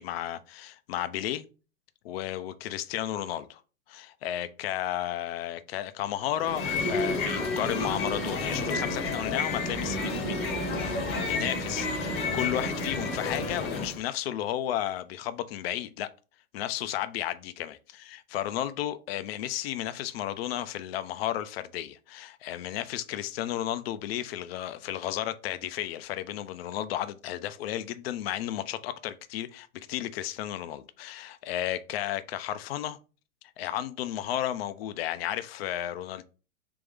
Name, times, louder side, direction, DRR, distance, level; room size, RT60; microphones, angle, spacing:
voice 1, 0.0-1.4 2.0-3.6 3.9-6.6 6.9-10.5 10.7-16.1 16.5-17.7 18.1-33.0 33.6-36.2, left 12 dB, 45° left, 0.5 m, -33 dB
sound 1, 6.4-14.0, left 2 dB, 25° left, 0.9 m, -30 dB
3.5 x 3.4 x 3.3 m
hypercardioid pair, 110°, 41 cm